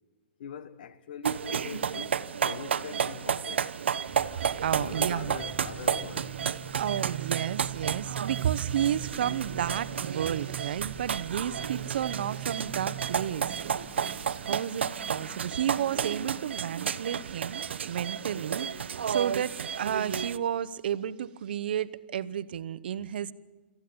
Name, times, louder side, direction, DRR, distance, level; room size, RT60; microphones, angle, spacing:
voice 1, 0.4-3.8 4.8-6.5, left 7 dB, 50° left, 1.4 m, -43 dB
sound 1, 1.2-20.4, right 7 dB, 85° right, 0.9 m, -32 dB
sound 2, 4.0-19.8 20.9-21.6, right 14 dB, 15° right, 1.0 m, -43 dB
voice 2, 4.6-5.4 6.7-13.6 14.4-23.3, right 9 dB, 60° right, 0.9 m, -32 dB
27.0 x 14.5 x 8.6 m
hypercardioid pair, 165°, 6 cm